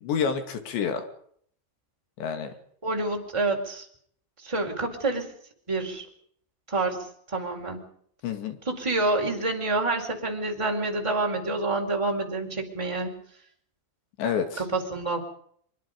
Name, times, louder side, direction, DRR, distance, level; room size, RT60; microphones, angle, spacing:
voice 1, 0.0-1.1 2.2-2.5 8.2-8.6 14.2-14.6, left 7 dB, 65° left, 7 dB, 4.5 m, -28 dB
voice 2, 2.8-3.8 4.4-5.3 5.7-6.1 6.7-7.0 7.3-7.8 8.7-13.2 14.6-15.2, right 2 dB, 5° right, 2 dB, 3.9 m, -27 dB
25.0 x 24.5 x 5.3 m, 0.63 s
omnidirectional pair, 5.6 m